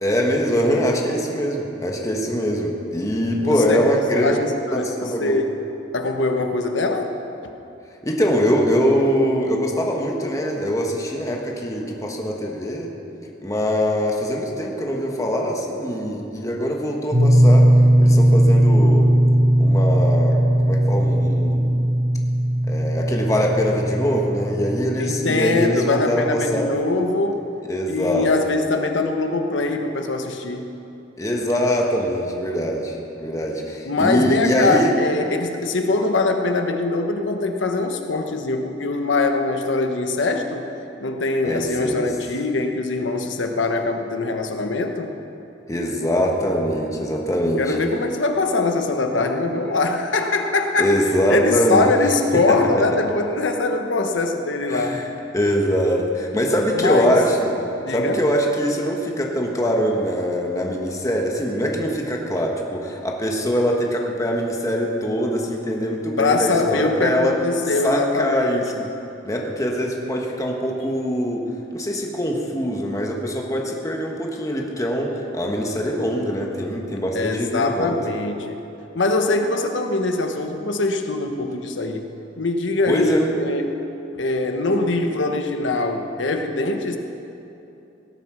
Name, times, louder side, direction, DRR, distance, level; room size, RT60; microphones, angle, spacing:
voice 1, 0.0-4.4 4.7-5.4 8.0-12.9 13.4-17.7 18.0-19.1 19.6-21.8 22.7-26.7 27.7-28.3 31.2-35.0 41.4-42.0 45.7-47.8 50.8-51.9 52.3-52.6 54.7-55.1 55.3-57.5 57.9-67.4 67.8-68.6 69.2-71.5 71.7-78.0 82.9-83.3, equal, 20° left, 0 dB, 1.3 m, -23 dB
voice 2, 3.4-3.8 4.1-5.5 5.9-7.1 25.0-27.5 27.8-30.7 33.8-40.7 41.0-45.1 47.6-55.0 56.7-57.2 57.8-58.2 66.2-68.6 77.1-78.6 78.9-82.0 82.4-83.8 84.2-87.0, left 3 dB, 90° left, 4 dB, 1.2 m, -22 dB
sound 1, 17.1-26.7, right 1 dB, 30° right, 1.3 m, -18 dB
17.5 x 9.6 x 6.2 m, 2.8 s
head